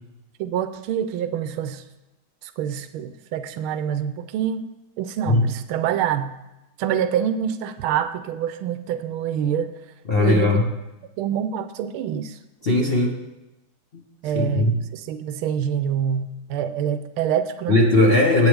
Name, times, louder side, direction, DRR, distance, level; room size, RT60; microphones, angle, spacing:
voice 1, 0.4-1.8 2.4-4.7 5.0-6.3 6.8-9.7 10.2-10.5 11.2-12.4 14.2-17.8, right 9 dB, 85° right, 10 dB, 1.5 m, -26 dB
voice 2, 10.1-10.6 12.6-13.1 13.9-14.0 14.3-14.8 17.7-18.5, left 2 dB, 40° left, -2 dB, 0.9 m, -18 dB
16.5 x 8.5 x 3.5 m, 0.96 s
omnidirectional pair, 2.3 m